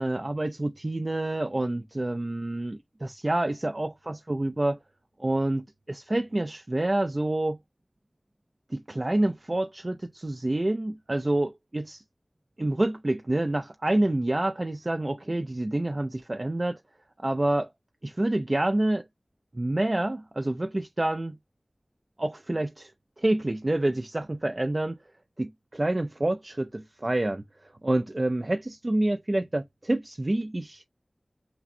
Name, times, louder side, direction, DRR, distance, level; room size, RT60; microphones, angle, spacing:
voice 1, 0.0-4.8 5.2-7.6 8.7-12.0 12.6-16.8 17.2-17.7 18.0-19.0 19.5-21.4 22.2-22.9 23.2-25.0 25.4-27.4 27.8-30.8, right 1 dB, 40° right, 0.3 m, -27 dB
5.8 x 2.0 x 2.5 m
wide cardioid pair, 55°, 0 cm